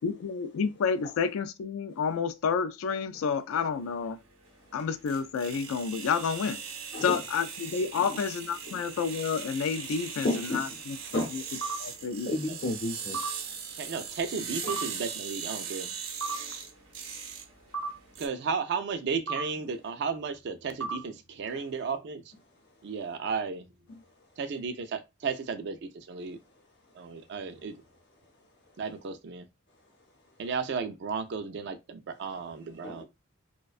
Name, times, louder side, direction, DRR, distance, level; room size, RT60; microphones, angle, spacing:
voice 1, 0.0-4.2 4.7-6.6 7.0-10.3 10.5-11.0 11.3-11.4 11.8-12.3, left 6 dB, 80° left, 0.3 m, -30 dB
sound 1, 3.6-18.3, right 6 dB, 90° right, 0.7 m, -40 dB
voice 2, 10.2-10.8 11.1-11.5 12.2-13.2 14.6-14.8 21.5-21.6 23.9-24.0 32.8-33.0, left 1 dB, 55° left, 0.7 m, -33 dB
sound 2, 11.6-11.8 13.1-13.3 14.7-14.9 16.2-16.4 17.7-17.9 19.3-19.5 20.8-21.0, right 3 dB, 20° left, 0.5 m, -33 dB
voice 3, 13.8-15.9 18.2-22.2 22.8-23.7 24.4-26.4 26.9-27.7 28.8-29.5 30.4-33.0, right 5 dB, 55° right, 0.3 m, -34 dB
2.4 x 2.1 x 2.4 m
head